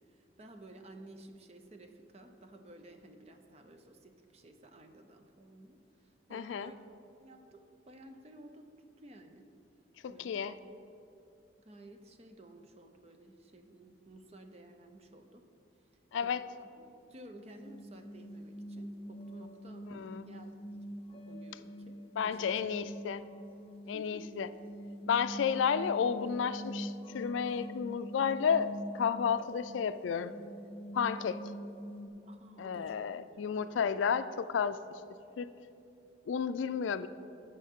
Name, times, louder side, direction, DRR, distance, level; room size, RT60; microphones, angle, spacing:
voice 1, 0.1-6.8 7.2-8.7 9.0-9.4 10.1-10.7 11.6-15.5 16.2-16.8 17.1-20.6 21.3-22.7 23.9-24.4 32.3-33.0 33.4-33.9, right 1 dB, 35° right, 6 dB, 0.6 m, -54 dB
voice 2, 6.3-6.7 10.0-10.6 16.1-16.4 19.9-20.3 22.2-23.2 23.9-24.5 25.1-30.3 30.9-31.4 32.6-34.8 35.4-35.5 36.3-37.1, left 7 dB, 85° left, 13 dB, 0.3 m, -32 dB
sound 1, 17.5-32.1, equal, 30° left, 0.6 m, -45 dB
14.0 x 5.4 x 3.6 m, 2.8 s
head